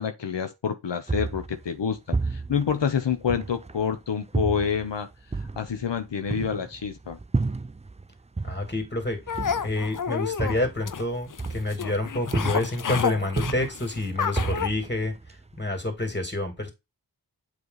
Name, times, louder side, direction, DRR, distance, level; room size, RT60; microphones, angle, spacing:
voice 1, 0.0-5.1 5.6-7.2, left 7 dB, 85° left, 0.9 m, -28 dB
sound 1, 1.1-3.9 4.3-8.1 8.4-12.0 12.3-12.9 13.2-15.6, right 3 dB, 15° right, 0.4 m, -31 dB
voice 2, 8.4-9.2 9.6-15.2 15.6-16.7, left 2 dB, 25° left, 2.9 m, -28 dB
sound 2, 9.3-14.7, left 7 dB, 50° left, 0.6 m, -30 dB
8.0 x 3.5 x 4.0 m
wide cardioid pair, 75°, 42 cm